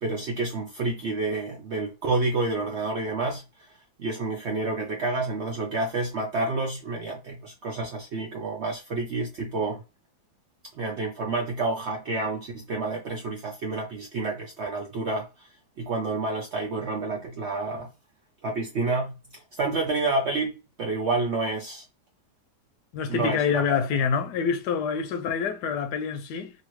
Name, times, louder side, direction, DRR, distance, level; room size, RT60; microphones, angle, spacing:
voice 1, 0.0-3.4 4.0-9.8 10.8-15.5 15.8-17.9 18.4-20.5 20.8-21.8 23.1-23.8, right 3 dB, 65° right, 0.7 m, -29 dB
voice 2, 22.9-26.5, left 6 dB, 80° left, 1.2 m, -26 dB
2.8 x 2.8 x 3.0 m
omnidirectional pair, 1.8 m